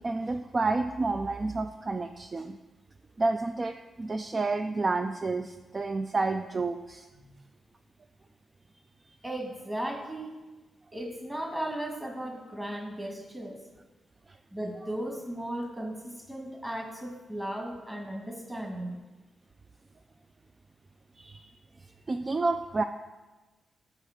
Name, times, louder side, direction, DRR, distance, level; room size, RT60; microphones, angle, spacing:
voice 1, 0.0-2.6 3.2-7.1 14.3-14.4 21.2-21.5 21.8-22.8, right 3 dB, 35° right, 8 dB, 0.3 m, -30 dB
voice 2, 9.2-10.3 10.9-13.6 14.5-19.0, right 1 dB, 15° right, 1 dB, 1.6 m, -36 dB
5.4 x 4.9 x 5.8 m, 1.2 s
cardioid pair, 60°, 0 cm